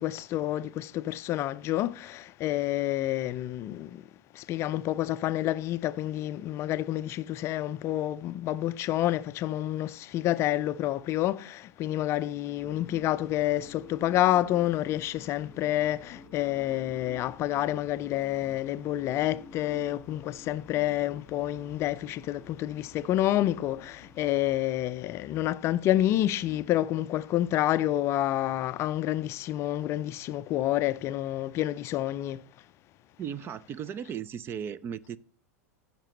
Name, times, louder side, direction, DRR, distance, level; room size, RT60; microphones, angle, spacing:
voice 1, 0.0-4.0 4.3-32.4, left 13 dB, 35° left, 0.4 m, -28 dB
sound 1, 12.6-24.4, left 2 dB, 10° left, 2.0 m, -51 dB
voice 2, 33.2-35.2, right 8 dB, 25° right, 0.4 m, -36 dB
14.5 x 5.8 x 3.1 m
figure-of-eight pair, 90°, 8 cm